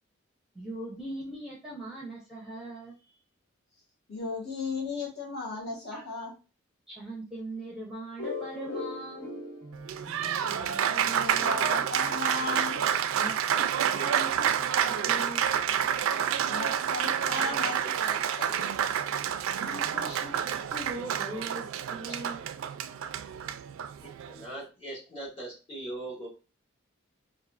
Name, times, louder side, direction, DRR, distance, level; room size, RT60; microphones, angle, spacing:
voice 1, 0.5-2.9 5.9-6.0 6.9-9.4 12.0-12.1 13.2-15.5 17.2-17.3 19.6-22.4, right 1 dB, 5° right, -3 dB, 0.7 m, -41 dB
voice 2, 4.1-6.3 10.5-12.8 16.5-18.7, left 3 dB, 50° left, -5 dB, 1.7 m, -36 dB
sound 1, 8.2-12.8, left 2 dB, 70° left, 1.7 m, -41 dB
Applause, 9.7-24.4, right 9 dB, 75° right, 0.3 m, -29 dB
voice 3, 24.0-26.3, right 1 dB, 25° left, -5 dB, 1.8 m, -40 dB
4.5 x 2.5 x 2.4 m, 0.32 s
head